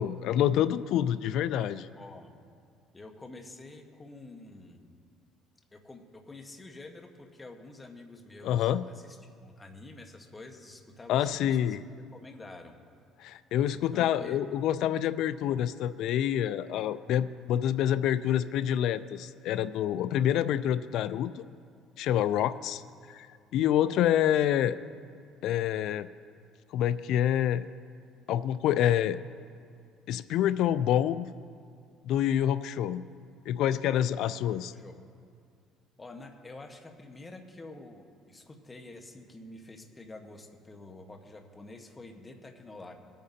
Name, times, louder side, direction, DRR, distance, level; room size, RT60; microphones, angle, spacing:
voice 1, 0.0-1.9 8.4-8.8 11.1-11.8 13.2-21.4 22.0-22.8 23.1-23.3 23.5-24.8 25.4-26.1 26.7-27.7 28.3-29.2 30.1-31.3 32.0-33.0 33.5-34.7, left 10 dB, 70° left, 13 dB, 0.4 m, -27 dB
voice 2, 2.0-2.3 2.9-4.9 5.7-12.7 13.7-14.4 34.1-35.0 36.0-42.9, left 2 dB, 20° left, 4 dB, 1.2 m, -48 dB
20.5 x 9.1 x 2.8 m, 2.2 s
cardioid pair, 115°, 0 cm